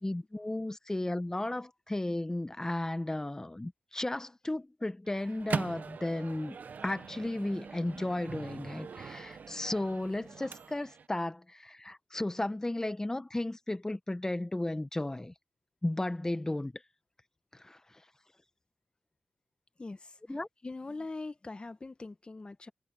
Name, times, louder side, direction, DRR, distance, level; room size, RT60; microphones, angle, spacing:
voice 1, 0.0-6.6 6.8-15.3 15.8-16.7 17.6-17.8 20.3-20.5, left 1 dB, 20° left, 1.2 m, -34 dB
Microwave oven, 5.1-11.1, right 5 dB, 70° right, 0.8 m, -41 dB
voice 2, 19.8-20.4 20.6-22.7, left 3 dB, 35° left, 1.7 m, -42 dB
cardioid pair, 55°, 3 cm